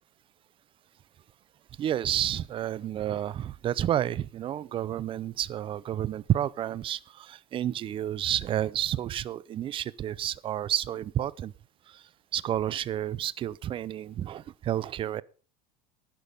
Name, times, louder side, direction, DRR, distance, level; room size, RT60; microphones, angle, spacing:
voice 1, 1.8-11.5 11.9-15.2, right 11 dB, 30° right, 0.6 m, -30 dB
11.5 x 10.5 x 5.4 m
supercardioid pair, 135°, 19 cm